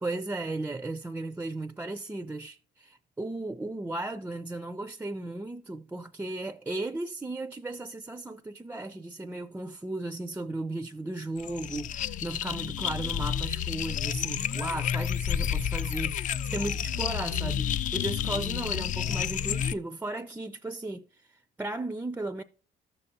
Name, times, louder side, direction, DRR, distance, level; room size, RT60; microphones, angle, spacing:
voice 1, 0.0-22.4, right 2 dB, 10° right, 0.4 m, -36 dB
sound 1, 11.4-19.7, left 9 dB, 50° left, 0.4 m, -30 dB
14.0 x 6.5 x 2.8 m
cardioid pair, 110°, 17 cm